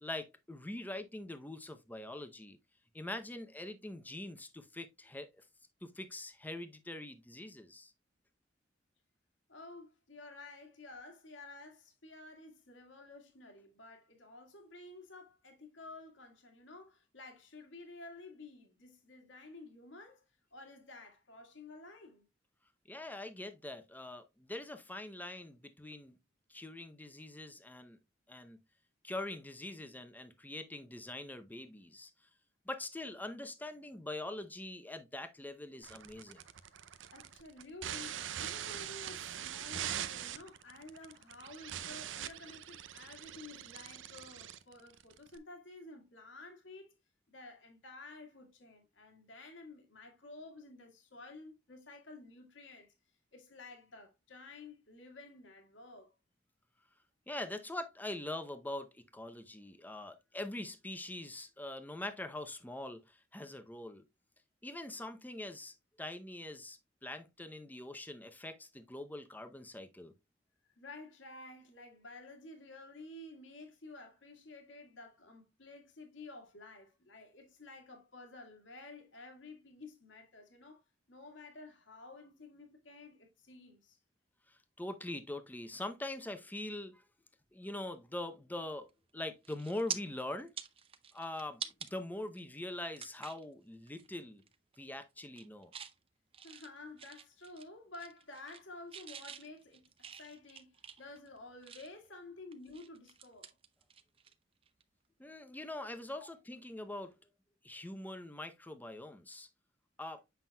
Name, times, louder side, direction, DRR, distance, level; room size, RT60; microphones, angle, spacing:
voice 1, 0.0-2.6 2.9-5.4 5.8-7.9 22.9-26.2 26.5-28.0 28.3-28.6 29.0-32.1 32.7-36.4 57.3-64.0 64.6-70.1 84.5-87.0 87.5-90.5 91.1-94.4 94.8-95.7 105.2-107.1 107.6-109.5 110.0-110.2, left 1 dB, 10° left, 0.6 m, -43 dB
voice 2, 9.5-20.2 20.5-22.3 37.1-46.9 47.3-52.9 53.3-56.1 70.8-80.8 81.1-84.0 96.4-103.6 106.2-106.3, left 2 dB, 85° left, 1.8 m, -52 dB
sound 1, 35.8-45.4, right 10 dB, 80° right, 0.5 m, -43 dB
sound 2, 88.9-89.1 89.4-90.0 90.4-91.9 92.4-92.5 93.0-93.5 93.9-94.1 94.4-94.8 95.2-95.9 96.3-97.7 97.9-98.6 98.9-102.1 102.5-104.3 104.6-104.8 106.7-106.9, right 8 dB, 30° right, 0.5 m, -46 dB
7.4 x 5.8 x 2.2 m
head